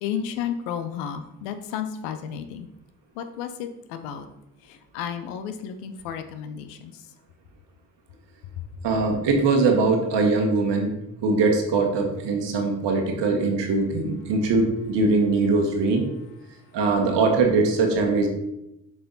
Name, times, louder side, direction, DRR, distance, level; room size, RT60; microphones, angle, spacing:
voice 1, 0.0-2.7 3.2-4.3 4.6-6.9, left 8 dB, 80° left, 9 dB, 0.7 m, -32 dB
voice 2, 8.8-10.9 11.2-16.0 16.7-18.3, right 3 dB, 65° right, 3 dB, 1.4 m, -21 dB
6.2 x 4.8 x 3.9 m, 0.89 s
hypercardioid pair, 40°, 45 cm